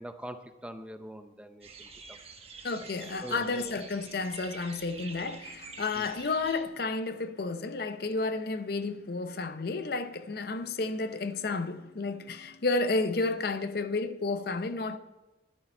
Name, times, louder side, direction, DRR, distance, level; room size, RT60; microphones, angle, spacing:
voice 1, 0.0-2.2 2.8-2.9 3.2-3.7 5.9-6.1, right 1 dB, 5° right, 0.5 m, -43 dB
sound 1, 1.6-6.6, right 4 dB, 30° right, 1.1 m, -47 dB
voice 2, 2.6-15.0, left 3 dB, 55° left, 0.6 m, -31 dB
13.0 x 11.5 x 4.4 m
head